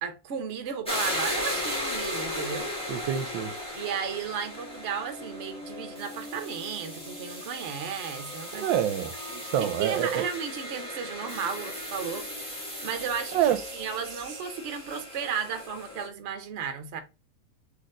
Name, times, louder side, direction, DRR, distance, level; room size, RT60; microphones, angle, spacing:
voice 1, 0.0-2.7 3.7-8.8 9.3-12.2 12.5-17.0, right 7 dB, 60° right, 0.7 m, -34 dB
sound 1, 0.8-16.1, left 1 dB, 5° left, 1.6 m, -36 dB
voice 2, 2.9-3.5 8.5-9.1 9.5-10.3 13.3-13.6, right 10 dB, 75° right, 1.2 m, -26 dB
4.1 x 3.2 x 3.7 m
omnidirectional pair, 2.1 m